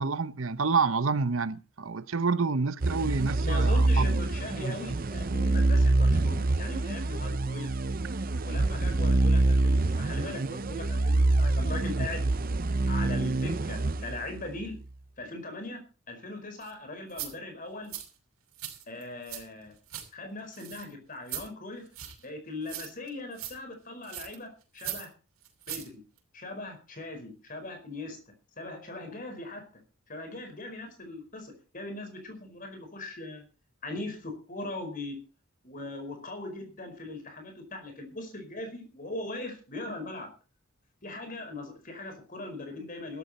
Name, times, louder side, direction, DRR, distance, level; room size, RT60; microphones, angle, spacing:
voice 1, 0.0-4.2, right 4 dB, 70° right, 0.9 m, -28 dB
sound 1, 2.8-14.7, right 2 dB, 40° right, 0.6 m, -26 dB
voice 2, 3.3-7.7 8.4-12.3 12.9-14.8 15.2-15.8 16.1-17.9 18.9-19.7 20.1-21.9 22.2-25.1 25.7-26.0 26.3-28.2 28.6-29.6 30.1-33.4 33.8-35.2 35.6-40.3 41.0-43.2, left 2 dB, 40° left, 4.8 m, -40 dB
sound 2, 16.6-16.7 17.1-17.3 17.9-18.1 18.5-19.4 19.7-20.1 20.5-20.9 21.3-21.5 21.9-22.2 22.7-23.1 23.4-23.5 24.0-24.4 24.8-25.1 25.4-25.9 26.2-26.3, right 12 dB, 85° right, 6.0 m, -39 dB
16.0 x 13.5 x 4.2 m
head